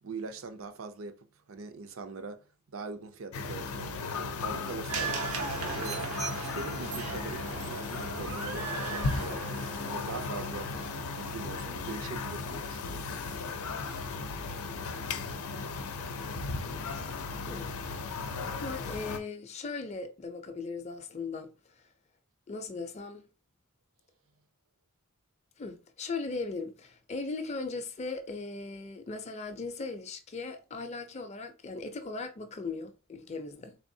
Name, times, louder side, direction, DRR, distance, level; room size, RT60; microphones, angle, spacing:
voice 1, 0.0-2.5 2.7-5.1 5.7-10.7 11.1-13.1 13.8-14.1, right 4 dB, 70° right, 0.5 m, -42 dB
sound 1, 3.3-19.2, left 4 dB, 85° left, 0.5 m, -36 dB
sound 2, 4.9-13.2 13.5-13.6, right 4 dB, 90° right, 0.8 m, -39 dB
voice 2, 18.0-21.5 22.5-23.2 25.6-33.8, left 3 dB, 30° left, 0.4 m, -38 dB
3.5 x 3.4 x 2.7 m
head